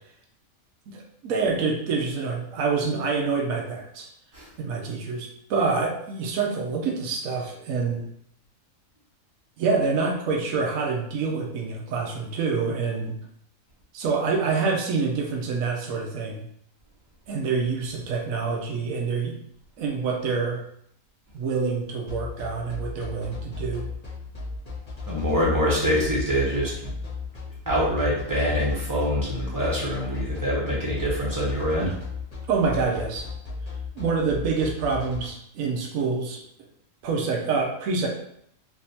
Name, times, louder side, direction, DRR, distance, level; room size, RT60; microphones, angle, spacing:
voice 1, 0.9-4.1 4.6-8.1 9.6-13.2 13.9-16.4 17.3-19.4 19.8-20.6 21.3-23.9 32.5-33.3 34.0-36.4 37.0-38.1, right 4 dB, 85° right, 0 dB, 1.1 m, -26 dB
sound 1, 22.1-35.3, left 4 dB, 30° left, 1.1 m, -36 dB
voice 2, 25.1-26.9 27.7-31.9, equal, 15° right, -6 dB, 0.9 m, -25 dB
3.4 x 2.8 x 2.8 m, 0.70 s
omnidirectional pair, 1.4 m